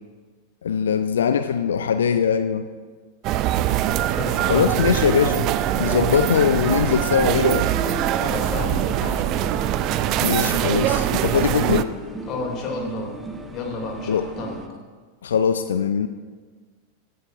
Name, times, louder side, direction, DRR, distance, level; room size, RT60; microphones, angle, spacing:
voice 1, 0.6-2.7 4.5-5.5 5.8-7.7 10.2-11.9 14.1-14.3 15.2-16.1, left 7 dB, 65° left, 11 dB, 0.4 m, -21 dB
sound 1, 3.2-11.8, right 12 dB, 40° right, 0.5 m, -23 dB
voice 2, 4.1-4.8 8.1-9.3 12.3-13.1 13.5-14.6, left 4 dB, 35° left, 1 dB, 2.9 m, -31 dB
sound 2, 4.8-14.7, right 1 dB, 10° right, 1.2 m, -36 dB
18.0 x 13.5 x 2.7 m, 1.5 s
figure-of-eight pair, 90°, 0 cm